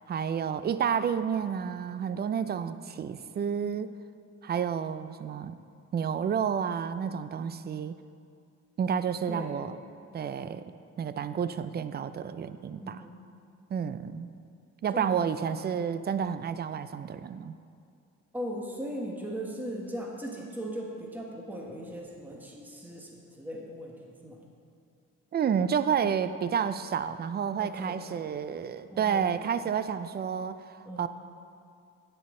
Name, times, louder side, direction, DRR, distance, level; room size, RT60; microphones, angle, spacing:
voice 1, 0.1-3.9 4.4-5.6 5.9-8.0 8.8-9.8 10.1-10.6 11.0-13.0 13.7-14.3 14.8-17.5 25.3-31.1, right 7 dB, 35° right, 13 dB, 0.4 m, -30 dB
voice 2, 12.8-13.1 14.9-15.2 18.3-23.9 24.2-24.5 27.6-28.3 28.9-29.5 30.9-31.1, equal, 5° right, -1 dB, 1.3 m, -38 dB
9.4 x 9.2 x 3.8 m, 2.4 s
cardioid pair, 90°, 30 cm